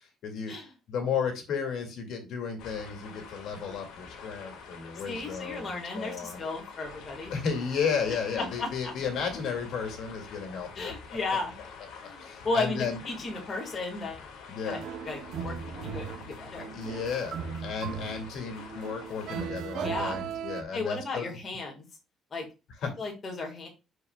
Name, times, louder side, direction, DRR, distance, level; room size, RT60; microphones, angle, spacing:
voice 1, 0.2-0.5 0.9-6.4 7.3-10.9 12.2-13.0 14.5-14.8 16.7-21.3 22.8-22.9, left 6 dB, 55° left, 4 dB, 2.1 m, -33 dB
sound 1, 2.6-19.5, left 5 dB, 90° left, 1.6 m, -47 dB
voice 2, 4.9-7.3 8.1-9.0 10.7-11.5 12.0-14.3 14.6-14.8 15.0-16.1 16.4-16.7 19.8-20.2 20.7-21.8 22.3-22.4 23.0-23.7, left 3 dB, 25° left, -1 dB, 1.6 m, -34 dB
sound 2, 14.7-20.6, right 7 dB, 55° right, 0.7 m, -37 dB
10.5 x 4.8 x 2.3 m, 0.28 s
cardioid pair, 175°, 0 cm